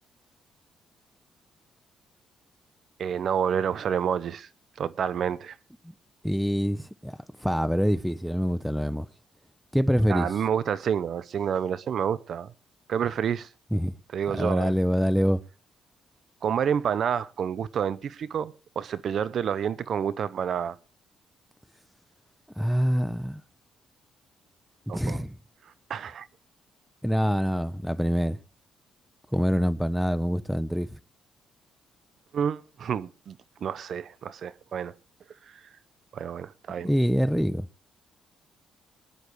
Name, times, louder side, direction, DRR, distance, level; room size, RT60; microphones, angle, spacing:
voice 1, 3.0-4.5 4.8-5.6 10.1-12.5 12.9-13.5 14.1-14.7 16.4-20.8 24.9-25.2 25.9-26.3 32.3-34.9 36.1-36.9, right 8 dB, 60° right, 0.7 m, -29 dB
voice 2, 6.2-9.1 9.7-10.3 13.7-13.9 14.4-15.4 22.6-23.4 24.9-25.4 27.0-28.4 29.3-31.0 36.8-37.7, equal, ahead, 0.8 m, -25 dB
23.0 x 10.5 x 3.1 m
cardioid pair, 90°, 0 cm